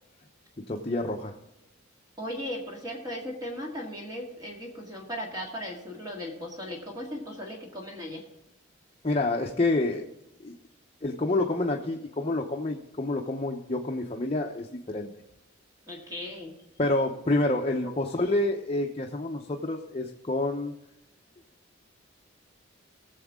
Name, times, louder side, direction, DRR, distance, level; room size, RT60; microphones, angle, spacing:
voice 1, 0.7-1.3 9.0-10.0 10.4-10.5 11.0-15.1 16.8-20.7, left 2 dB, 30° left, 0 dB, 0.8 m, -28 dB
voice 2, 2.2-8.2 15.9-16.5 17.8-17.9, equal, 20° right, -1 dB, 1.9 m, -37 dB
19.5 x 7.2 x 3.7 m, 0.87 s
head